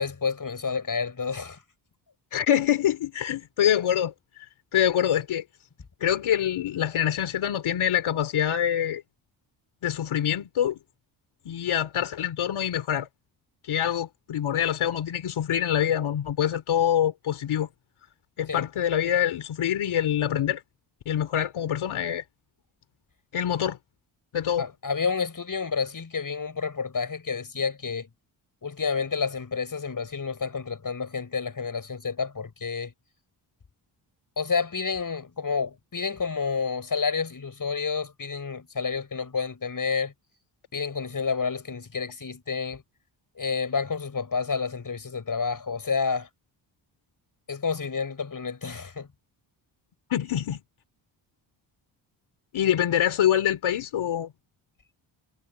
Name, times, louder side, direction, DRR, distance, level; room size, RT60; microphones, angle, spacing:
voice 1, 0.0-1.6 18.5-18.7 24.6-28.1 28.6-32.9 34.4-40.1 40.7-42.8 43.4-46.3 47.5-49.1, left 5 dB, 40° left, 6.3 m, -29 dB
voice 2, 2.3-4.1 4.7-5.4 6.0-9.0 9.8-10.8 11.5-13.1 13.6-17.7 18.4-20.6 21.1-22.2 23.3-23.8 24.3-24.7 50.1-50.6 52.5-54.3, left 10 dB, 80° left, 3.7 m, -25 dB
supercardioid pair, 55°, 48 cm